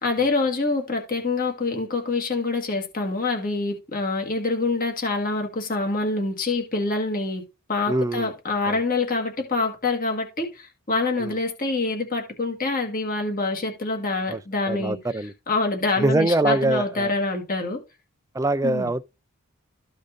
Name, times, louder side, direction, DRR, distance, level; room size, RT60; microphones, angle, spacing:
voice 1, 0.0-7.4 7.7-15.0 15.5-17.8 18.6-18.9, left 3 dB, 40° left, 1.7 m, -26 dB
voice 2, 7.9-8.3 8.7-8.8 11.2-11.4 14.3-14.4 14.7-15.3 16.0-17.1 18.3-19.1, right 2 dB, 15° right, 0.4 m, -23 dB
13.5 x 5.0 x 2.6 m
head